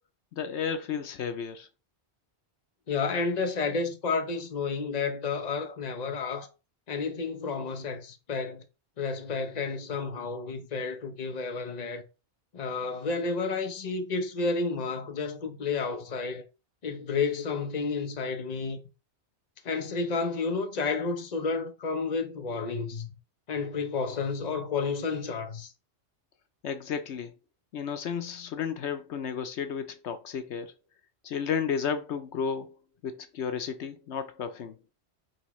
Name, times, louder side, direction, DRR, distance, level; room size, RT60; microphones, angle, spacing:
voice 1, 0.3-1.7 26.6-27.3 27.7-30.7 31.2-32.8 33.0-34.8, left 7 dB, 80° left, 1.0 m, -33 dB
voice 2, 2.9-6.5 6.9-8.6 9.0-12.0 12.5-16.4 16.8-18.8 19.6-23.1 23.5-25.7, left 4 dB, 40° left, 1.0 m, -31 dB
9.2 x 3.5 x 3.1 m
omnidirectional pair, 1.1 m